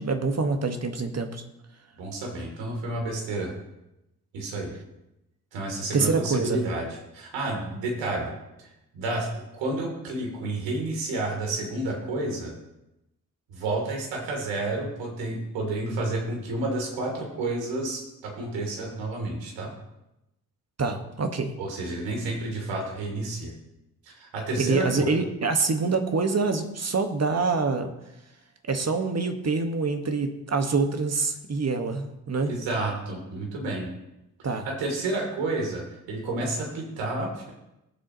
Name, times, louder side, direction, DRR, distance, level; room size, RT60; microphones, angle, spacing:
voice 1, 0.0-1.4 5.9-6.6 20.8-21.5 24.6-27.9 28.7-32.5 34.4-34.7, right 4 dB, 35° right, 6 dB, 1.6 m, -26 dB
voice 2, 2.0-3.5 4.3-4.7 5.5-8.3 8.6-8.7 8.9-12.5 13.5-19.7 21.6-23.5 24.0-25.1 32.4-33.9 34.6-35.8 36.1-37.5, right 2 dB, 70° right, 0 dB, 3.2 m, -30 dB
18.0 x 7.7 x 3.1 m, 0.90 s
hypercardioid pair, 45°, 45 cm